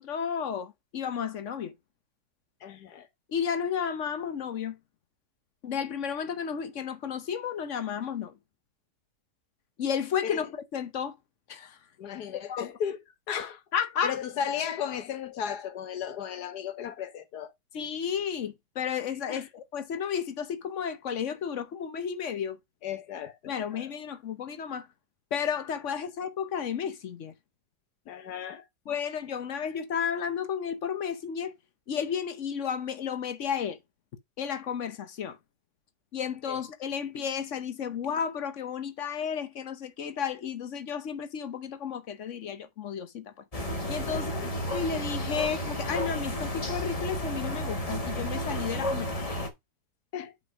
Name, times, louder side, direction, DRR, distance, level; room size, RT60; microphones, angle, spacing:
voice 1, 0.0-1.7 3.3-4.8 5.6-8.3 9.8-11.1 11.5-11.8 12.5-12.7 13.7-14.2 17.7-22.6 23.5-24.9 25.3-27.3 28.9-31.5 31.9-33.8 34.4-35.4 36.1-43.3 43.9-44.3 44.7-49.2, left 7 dB, 55° left, 1.0 m, -32 dB
voice 2, 2.6-3.1 10.2-10.5 12.0-13.6 14.0-17.5 19.3-19.4 22.8-23.9 28.1-28.7 36.5-36.6 44.1-44.5 50.1-50.3, left 8 dB, 70° left, 1.6 m, -35 dB
sound 1, 43.5-49.5, equal, 25° left, 1.1 m, -32 dB
5.3 x 5.1 x 5.0 m
omnidirectional pair, 1.8 m